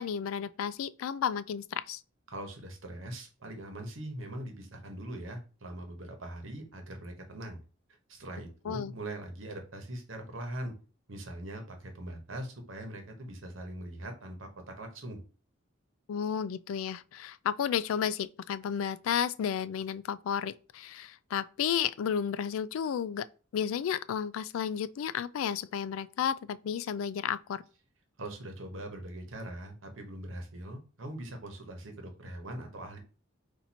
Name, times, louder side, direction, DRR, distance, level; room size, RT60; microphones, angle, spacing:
voice 1, 0.0-2.0 8.6-8.9 16.1-23.3 23.5-27.6, left 8 dB, 90° left, 0.3 m, -32 dB
voice 2, 2.3-7.6 8.1-10.7 11.1-15.2 28.2-33.0, right 1 dB, 70° right, 1.1 m, -41 dB
4.3 x 2.6 x 4.1 m
head